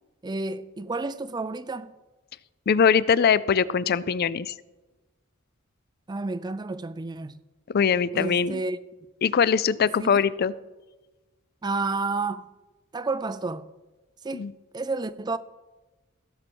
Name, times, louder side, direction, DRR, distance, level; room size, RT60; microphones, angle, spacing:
voice 1, 0.2-1.9 6.1-7.4 8.1-8.8 10.0-10.2 11.6-12.5 12.9-13.7 14.2-14.5 14.7-15.4, right 3 dB, 20° right, 0.4 m, -30 dB
voice 2, 2.7-4.5 7.7-8.6 9.2-10.5 14.3-14.5, left 6 dB, 50° left, 0.4 m, -22 dB
15.5 x 5.9 x 6.1 m
head